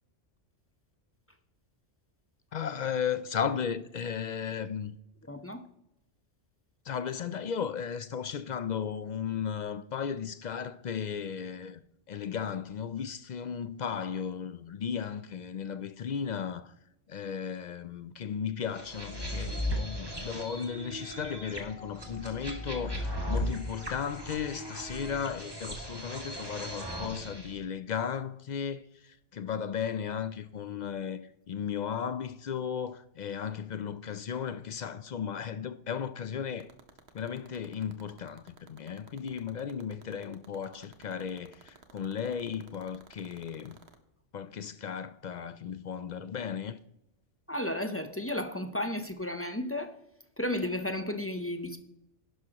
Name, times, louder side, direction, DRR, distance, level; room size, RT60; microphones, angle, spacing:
voice 1, 2.5-5.0 6.9-11.8 12.1-16.7 17.1-28.8 29.3-31.2 31.5-36.7 37.1-43.8 44.3-46.8, left 7 dB, 65° left, 0.4 m, -35 dB
voice 2, 5.3-5.6 47.5-50.0 50.4-51.8, left 1 dB, 15° left, 0.6 m, -33 dB
sound 1, 18.7-27.5, equal, 20° right, 1.8 m, -37 dB
sound 2, 36.5-43.9, right 6 dB, 60° right, 1.3 m, -52 dB
11.0 x 11.0 x 3.0 m
omnidirectional pair, 1.2 m